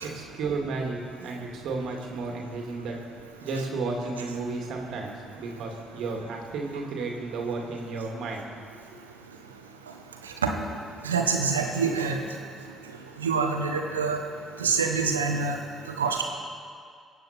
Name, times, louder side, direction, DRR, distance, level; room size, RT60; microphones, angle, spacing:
voice 1, 0.0-3.0 3.4-8.7, right 3 dB, 65° right, 0 dB, 2.2 m, -33 dB
voice 2, 11.0-12.2 13.2-14.2 14.6-15.6 16.0-16.2, right 5 dB, 90° right, 3 dB, 1.1 m, -25 dB
23.0 x 8.7 x 4.3 m, 2.2 s
hypercardioid pair, 45°, 0 cm